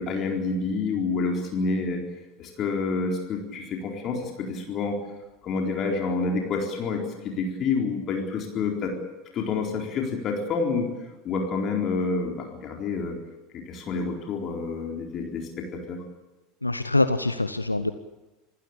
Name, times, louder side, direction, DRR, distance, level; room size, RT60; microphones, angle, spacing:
voice 1, 0.0-2.0 2.4-5.0 5.4-8.9 9.3-10.9 11.2-13.2 13.5-16.0, left 4 dB, 35° left, 2 dB, 4.1 m, -28 dB
voice 2, 16.6-17.9, left 2 dB, 85° left, 12 dB, 0.8 m, -24 dB
27.0 x 15.5 x 8.7 m, 1.1 s
figure-of-eight pair, 75°, 0 cm